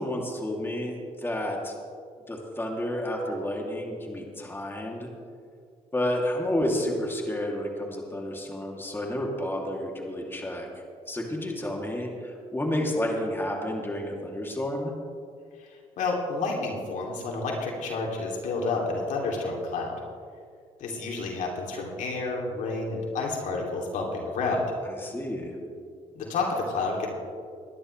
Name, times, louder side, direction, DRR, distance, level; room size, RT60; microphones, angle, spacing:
voice 1, 0.0-1.7 2.3-5.1 5.9-10.7 11.1-14.9 24.9-25.6, left 1 dB, 15° left, 0 dB, 2.8 m, -30 dB
voice 2, 15.6-20.0 20.8-24.6 26.2-27.1, left 3 dB, 70° left, -1 dB, 2.9 m, -30 dB
22.0 x 10.5 x 3.3 m, 2.2 s
supercardioid pair, 75°, 13 cm